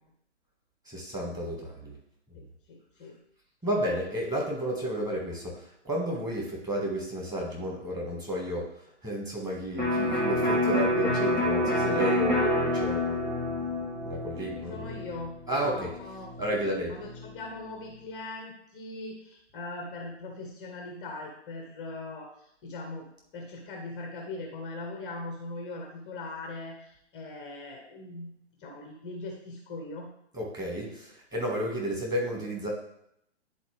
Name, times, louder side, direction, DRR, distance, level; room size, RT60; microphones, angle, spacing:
voice 1, 0.8-1.9 3.6-8.6 9.0-14.9 15.5-15.9 16.4-16.9 30.3-32.7, equal, 10° right, -3 dB, 1.5 m, -32 dB
voice 2, 2.3-3.2 14.4-16.3 16.9-23.1 23.3-28.3 28.6-30.1, left 2 dB, 10° left, 2 dB, 0.5 m, -40 dB
Electric guitar, 9.8-17.4, left 1 dB, 90° right, 2.8 m, -28 dB
9.9 x 4.2 x 3.3 m, 0.74 s
figure-of-eight pair, 125°, 36 cm